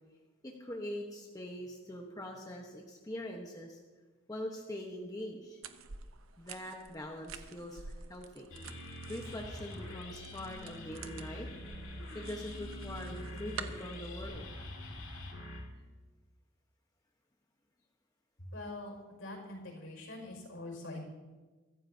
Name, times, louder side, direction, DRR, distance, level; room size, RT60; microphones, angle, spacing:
voice 1, 0.4-3.8 4.3-5.6 6.4-8.4 9.1-11.5 12.1-14.4, left 1 dB, 20° left, 0 dB, 1.1 m, -43 dB
sound 1, 5.6-14.3, right 5 dB, 75° right, 0.8 m, -49 dB
sound 2, 8.5-15.6, left 1 dB, 85° left, 4.2 m, -44 dB
voice 2, 18.5-21.0, left 2 dB, 65° left, 1 dB, 5.5 m, -44 dB
23.5 x 14.5 x 2.8 m, 1.3 s
head